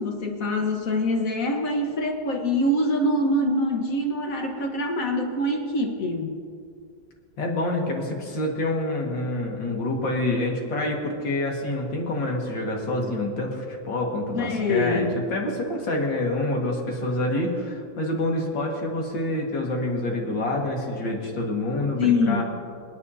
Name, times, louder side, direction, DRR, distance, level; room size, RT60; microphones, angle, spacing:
voice 1, 0.0-6.3 14.3-15.3 22.0-22.4, left 1 dB, 50° left, 3 dB, 1.7 m, -24 dB
voice 2, 7.4-22.4, left 1 dB, 70° left, 0 dB, 2.6 m, -27 dB
27.0 x 10.0 x 2.8 m, 2.2 s
omnidirectional pair, 2.1 m